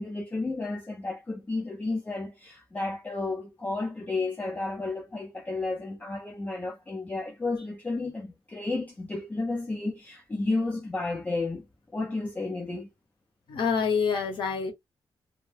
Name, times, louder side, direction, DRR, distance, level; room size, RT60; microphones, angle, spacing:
voice 1, 0.0-11.7 11.9-12.9, left 3 dB, 15° left, 0.5 m, -32 dB
voice 2, 13.5-14.7, left 6 dB, 65° left, 0.9 m, -26 dB
2.1 x 2.1 x 3.2 m
wide cardioid pair, 165°, 9 cm